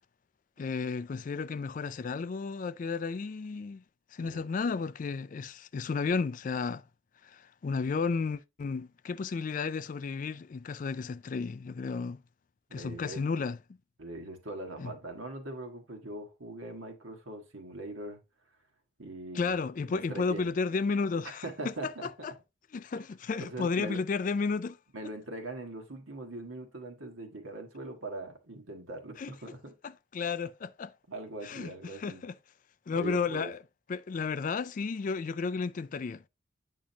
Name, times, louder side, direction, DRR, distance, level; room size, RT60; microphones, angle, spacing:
voice 1, 0.6-3.8 4.1-6.8 7.2-12.2 12.7-13.6 14.8-14.9 19.3-22.3 22.7-24.8 29.2-29.3 29.8-30.9 31.4-32.3 32.9-33.6 33.9-36.2, left 4 dB, 40° left, 0.3 m, -33 dB
voice 2, 12.7-13.2 14.0-18.2 19.0-19.6 19.8-20.5 21.4-22.1 22.9-23.0 23.4-24.0 24.9-29.7 31.1-32.2 32.9-33.5, right 2 dB, 90° right, 1.6 m, -41 dB
8.7 x 6.2 x 2.8 m
head